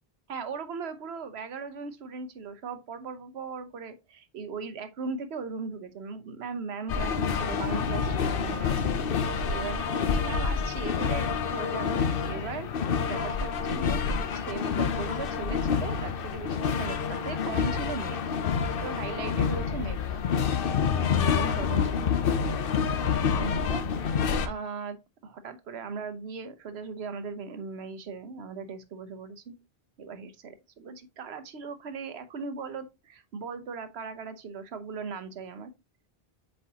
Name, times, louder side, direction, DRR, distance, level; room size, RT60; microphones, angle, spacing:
voice 1, 0.3-8.7 9.0-12.7 13.0-14.0 14.3-18.3 18.8-20.2 20.8-22.1 23.3-25.0 25.2-29.5 30.0-35.7, right 5 dB, 85° right, 1.1 m, -38 dB
sound 1, 6.9-24.5, left 6 dB, 65° left, 0.8 m, -28 dB
7.5 x 4.4 x 2.8 m
omnidirectional pair, 1.0 m